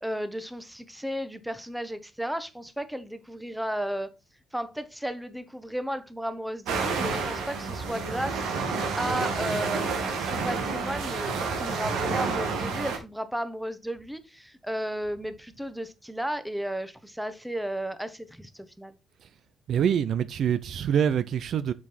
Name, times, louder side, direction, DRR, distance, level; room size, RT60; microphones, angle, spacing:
voice 1, 0.0-4.1 4.5-8.7 9.0-18.9, equal, 5° right, 1.0 m, -34 dB
sound 1, 6.7-13.0, right 4 dB, 90° right, 1.8 m, -29 dB
voice 2, 19.7-21.7, right 8 dB, 65° right, 0.5 m, -25 dB
7.1 x 5.3 x 4.3 m
cardioid pair, 90°, 0 cm